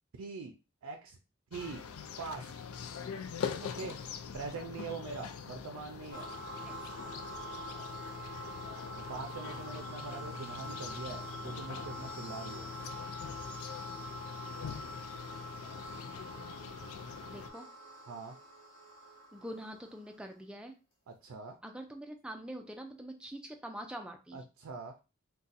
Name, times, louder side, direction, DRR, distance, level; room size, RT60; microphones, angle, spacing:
voice 1, 0.2-0.5 0.8-1.2 1.5-1.9 2.2-2.6 3.6-4.0 4.3-6.3 9.0-12.7 18.0-18.4 21.1-21.6 24.3-24.9, right 4 dB, 90° right, 4 dB, 0.4 m, -43 dB
sound 1, 1.5-17.5, left 6 dB, 85° left, 0.4 m, -43 dB
sound 2, 6.1-20.2, equal, 45° left, 1.2 m, -45 dB
voice 2, 17.3-17.7 19.3-20.7 21.6-24.4, right 1 dB, 5° right, 4 dB, 0.3 m, -44 dB
2.5 x 2.2 x 4.0 m, 0.30 s
head